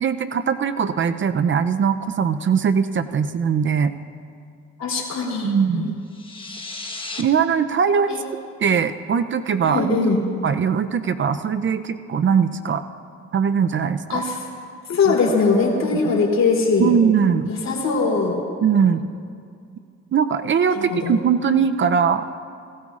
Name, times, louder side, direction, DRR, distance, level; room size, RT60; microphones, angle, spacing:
voice 1, 0.0-3.9 5.4-6.0 7.2-8.1 8.6-10.1 10.4-12.8 13.3-14.2 15.1-15.2 16.1-16.2 16.8-17.5 18.6-19.0 20.1-22.4, right 7 dB, 40° right, 10 dB, 0.5 m, -21 dB
voice 2, 4.8-5.9 8.1-8.2 9.6-10.2 14.1-14.4 14.9-16.9 17.5-18.4 20.7-21.1, left 4 dB, 60° left, -1 dB, 3.0 m, -21 dB
sound 1, 6.1-7.2, left 3 dB, 15° left, 1.2 m, -34 dB
17.5 x 17.0 x 2.5 m, 2.3 s
cardioid pair, 90°, 30 cm